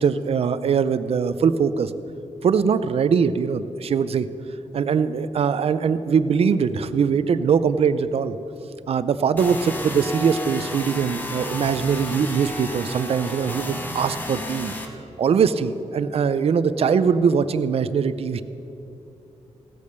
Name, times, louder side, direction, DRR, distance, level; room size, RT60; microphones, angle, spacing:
voice 1, 0.0-1.9 2.4-4.3 4.7-8.4 8.9-14.7 15.2-18.4, right 6 dB, 55° right, 13 dB, 0.5 m, -21 dB
sound 1, 9.4-14.9, left 1 dB, 15° left, 1.0 m, -32 dB
16.5 x 8.5 x 6.7 m, 2.9 s
wide cardioid pair, 160°, 12 cm